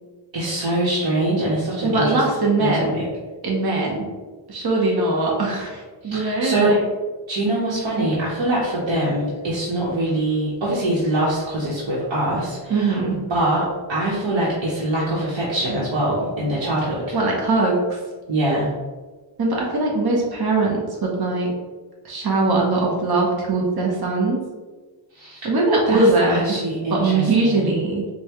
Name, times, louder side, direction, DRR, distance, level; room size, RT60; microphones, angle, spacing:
voice 1, 0.3-2.2 2.6-3.0 6.0-6.7 7.3-17.2 18.3-18.7 25.1-25.5 25.9-27.7, right 1 dB, 80° right, -8 dB, 1.1 m, -23 dB
voice 2, 1.8-3.0 3.4-4.1 4.5-6.8 12.7-13.2 17.1-18.0 19.4-21.5 22.0-24.4 25.4-26.6 26.9-28.1, right 2 dB, 55° right, -2 dB, 0.9 m, -21 dB
5.3 x 2.3 x 3.0 m, 1.3 s
wide cardioid pair, 85°, 45 cm